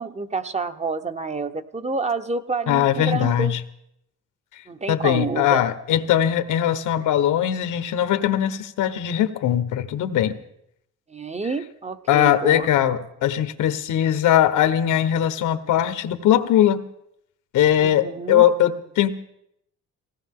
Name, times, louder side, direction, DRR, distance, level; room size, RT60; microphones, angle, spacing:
voice 1, 0.0-3.5 4.7-5.6 11.1-12.7 17.8-18.4, right 4 dB, 20° right, 9 dB, 1.0 m, -28 dB
voice 2, 2.7-3.6 4.9-10.4 12.1-16.8 17.5-19.1, left 11 dB, 85° left, 9 dB, 1.3 m, -20 dB
19.5 x 17.0 x 3.8 m, 0.77 s
cardioid pair, 90°, 30 cm